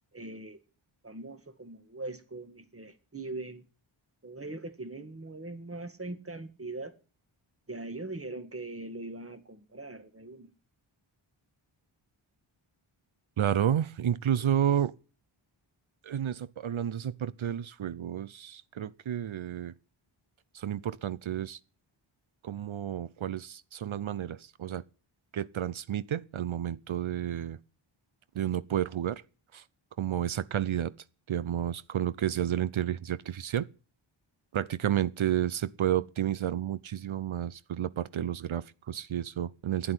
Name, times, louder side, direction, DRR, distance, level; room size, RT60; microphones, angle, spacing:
voice 1, 0.1-0.6 1.0-3.6 4.2-6.9 7.7-10.5, right 2 dB, 25° right, 2.0 m, -41 dB
voice 2, 13.4-14.9 16.0-19.7 20.5-21.6 22.4-24.8 25.3-27.6 28.3-29.2 29.5-29.6 30.0-30.9 31.3-33.7 34.5-39.9, right 10 dB, 70° right, 0.8 m, -31 dB
11.5 x 10.5 x 9.8 m
wide cardioid pair, 85°, 49 cm